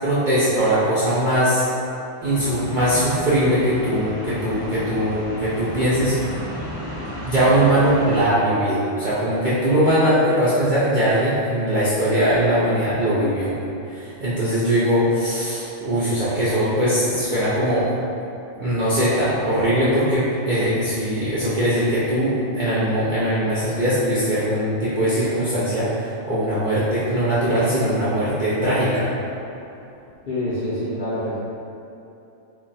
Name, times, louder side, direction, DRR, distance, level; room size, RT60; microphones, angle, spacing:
voice 1, 0.0-1.7 2.2-6.2 7.3-13.5 13.9-17.9 18.6-29.1, right 1 dB, 65° right, -11 dB, 0.4 m, -20 dB
sound 1, 2.2-8.2, left 1 dB, 25° left, 0.6 m, -33 dB
voice 2, 30.3-31.3, left 1 dB, 75° left, -9 dB, 0.4 m, -26 dB
2.4 x 2.2 x 3.9 m, 2.8 s
omnidirectional pair, 1.5 m